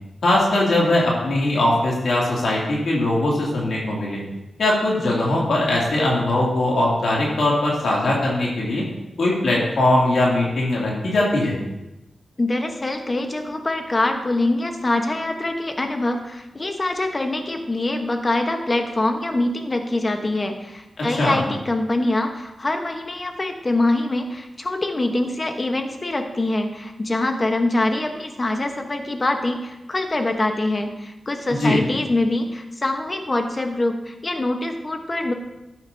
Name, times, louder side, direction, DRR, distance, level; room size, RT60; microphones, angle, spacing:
voice 1, 0.2-4.2 4.6-8.8 9.2-11.5 21.2-21.4 31.5-31.8, left 1 dB, 80° left, -4 dB, 2.8 m, -20 dB
voice 2, 12.4-35.3, left 2 dB, 35° left, 5 dB, 1.2 m, -24 dB
12.0 x 9.5 x 2.8 m, 0.97 s
cardioid pair, 75°, 0 cm